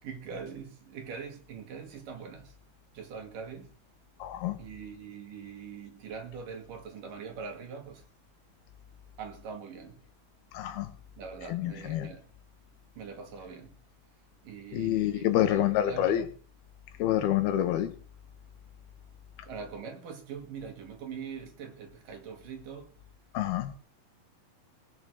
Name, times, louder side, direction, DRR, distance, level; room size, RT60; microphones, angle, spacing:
voice 1, 0.0-2.6 2.9-3.7 4.6-8.1 9.2-10.0 11.2-12.3 13.0-13.8 14.4-16.3 19.5-23.0, right 6 dB, 65° right, 3.8 m, -43 dB
voice 2, 4.2-4.6 10.5-10.9 11.4-12.1 14.7-16.3 17.0-17.9 23.3-23.7, left 12 dB, 85° left, 3.2 m, -27 dB
20.0 x 7.0 x 6.7 m
omnidirectional pair, 4.3 m